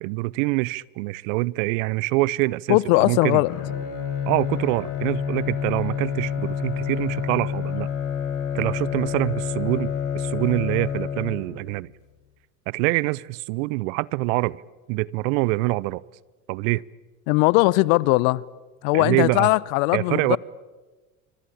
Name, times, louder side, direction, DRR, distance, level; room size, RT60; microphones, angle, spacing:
voice 1, 0.0-3.4 4.2-7.9 8.5-11.9 12.7-14.6 14.9-16.0 16.5-16.8 18.9-19.5 19.9-20.4, right 22 dB, 60° right, 0.8 m, -25 dB
voice 2, 2.7-3.5 17.3-18.4 18.8-20.4, left 22 dB, 60° left, 0.9 m, -19 dB
Bowed string instrument, 3.5-11.8, left 8 dB, 45° left, 6.7 m, -28 dB
27.0 x 25.0 x 8.7 m
hypercardioid pair, 80°, 45 cm